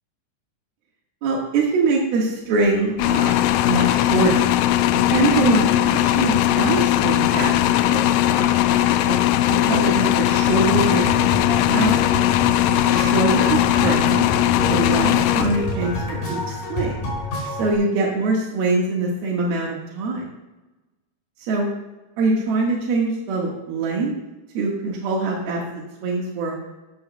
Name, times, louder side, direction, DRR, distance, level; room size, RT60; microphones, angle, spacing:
voice 1, 1.2-3.4 3.7-4.4 4.9-9.2 9.5-11.3 11.7-11.9 12.9-14.3 14.7-17.0 17.5-20.3 21.4-21.7 22.2-24.1 24.6-25.6 26.0-26.6, right 3 dB, 85° right, -2 dB, 3.6 m, -23 dB
sound 1, 3.0-16.0, left 13 dB, 85° left, 1.9 m, -19 dB
sound 2, 10.5-17.7, left 1 dB, 60° left, 5.2 m, -28 dB
16.5 x 13.0 x 2.3 m, 1.1 s
omnidirectional pair, 4.2 m